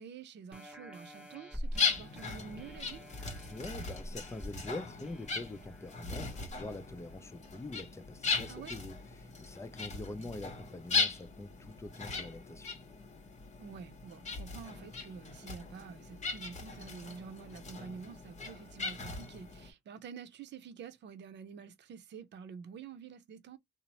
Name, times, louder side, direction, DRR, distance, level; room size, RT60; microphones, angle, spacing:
voice 1, 0.0-3.0 8.5-8.7 10.2-10.3 13.6-23.6, right 6 dB, 60° right, 0.6 m, -48 dB
sound 1, 0.5-7.7 8.2-8.3, equal, 5° right, 0.9 m, -47 dB
sound 2, 1.8-19.7, left 5 dB, 35° left, 0.9 m, -38 dB
voice 2, 3.5-12.7, left 2 dB, 15° left, 0.5 m, -44 dB
2.7 x 2.0 x 3.0 m
cardioid pair, 90°, 20 cm